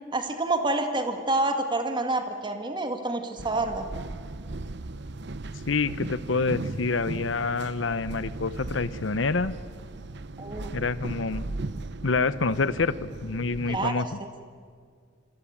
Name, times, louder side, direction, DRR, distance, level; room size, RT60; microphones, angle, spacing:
voice 1, 0.1-3.9 10.4-10.7 13.7-14.3, right 2 dB, 25° right, 6 dB, 2.1 m, -28 dB
sound 1, 3.4-13.9, right 2 dB, 60° right, 0.9 m, -37 dB
voice 2, 5.7-9.5 10.7-11.4 12.0-12.9 13.2-14.1, left 4 dB, 70° left, 15 dB, 0.8 m, -27 dB
26.0 x 25.5 x 8.8 m, 2.1 s
head